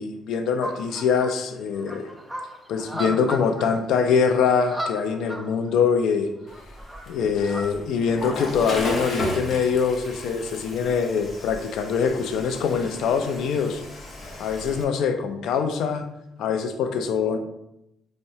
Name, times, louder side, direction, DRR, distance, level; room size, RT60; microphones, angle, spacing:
voice 1, 0.0-2.1 2.7-6.3 7.1-13.8 14.4-16.1 16.4-17.4, left 6 dB, 85° left, 7 dB, 0.4 m, -23 dB
sound 1, 0.6-1.3 1.7-3.7 3.9-4.0 4.2-4.3 4.5-5.7 6.5-7.6, equal, 10° right, 0.4 m, -35 dB
Water / Toilet flush, 6.5-14.8, left 1 dB, 40° left, 0.8 m, -35 dB
5.4 x 2.1 x 2.7 m, 0.83 s
cardioid pair, 110°, 0 cm